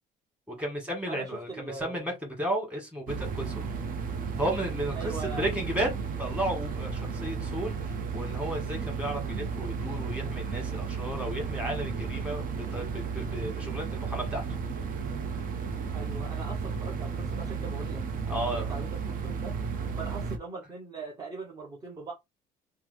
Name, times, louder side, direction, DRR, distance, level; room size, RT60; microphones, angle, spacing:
voice 1, 0.5-3.7 4.4-14.4 18.3-18.7, right 1 dB, 5° right, 1.6 m, -34 dB
voice 2, 1.1-2.1 4.9-5.4 15.9-18.0 18.3-19.5 20.0-22.1, right 4 dB, 25° right, 0.8 m, -41 dB
sound 1, 3.1-20.4, right 5 dB, 55° right, 0.7 m, -33 dB
3.2 x 2.0 x 3.3 m
cardioid pair, 110°, 17 cm